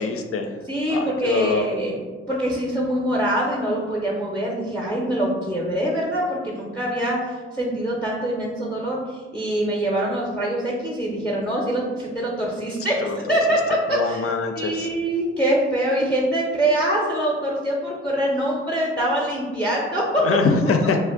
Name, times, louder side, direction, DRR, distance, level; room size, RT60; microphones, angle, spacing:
voice 1, 0.0-0.5 0.9-1.6 13.0-13.2 13.9-14.9 20.2-21.0, left 4 dB, 50° left, 5 dB, 0.4 m, -23 dB
voice 2, 0.7-14.3 14.6-20.2, right 1 dB, 5° left, -3 dB, 0.6 m, -24 dB
2.4 x 2.0 x 3.5 m, 1.4 s
hypercardioid pair, 45°, 30 cm